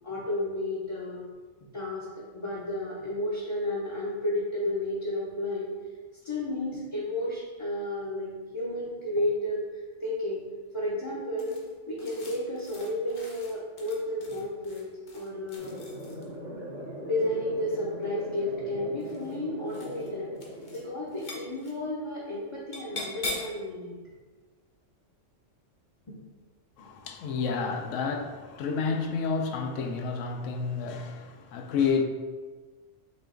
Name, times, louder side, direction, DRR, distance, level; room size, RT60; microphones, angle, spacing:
voice 1, 0.0-1.2 1.7-5.7 6.2-9.6 10.0-10.4 10.7-11.6 11.9-14.9 15.1-15.8 17.0-20.3 20.7-23.9 26.1-26.2, left 1 dB, 30° left, -7 dB, 0.6 m, -32 dB
sound 1, 11.4-16.4 17.6-18.3 18.9-19.4 19.7-20.1 20.3-20.8 21.1-21.7 22.7-23.6, left 2 dB, 50° left, 1.0 m, -41 dB
sound 2, 15.6-21.6, equal, 75° right, 1.4 m, -41 dB
voice 2, 26.8-32.0, left 5 dB, 80° left, 5 dB, 0.9 m, -30 dB
5.7 x 2.4 x 3.7 m, 1.4 s
omnidirectional pair, 1.3 m